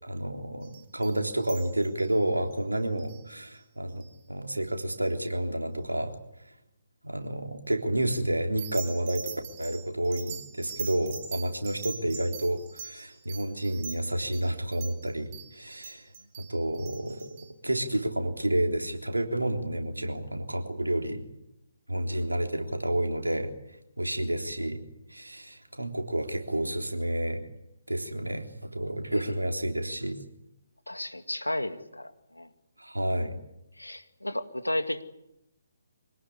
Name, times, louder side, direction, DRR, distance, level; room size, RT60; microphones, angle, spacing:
voice 1, 0.0-4.0 4.3-6.1 7.0-16.1 16.4-17.4 17.6-21.2 21.9-23.5 24.0-24.8 25.1-27.5 27.9-30.2 32.8-33.4, right 1 dB, 85° right, 4 dB, 3.6 m, -30 dB
sound 1, 0.6-2.1 2.5-2.6 3.0-3.2 4.0-4.1 8.6-17.5, right 7 dB, 35° right, 4.2 m, -43 dB
voice 2, 30.9-32.5 33.8-35.0, left 1 dB, 90° left, 9 dB, 2.3 m, -33 dB
25.5 x 18.0 x 9.8 m, 0.87 s
figure-of-eight pair, 140°, 0 cm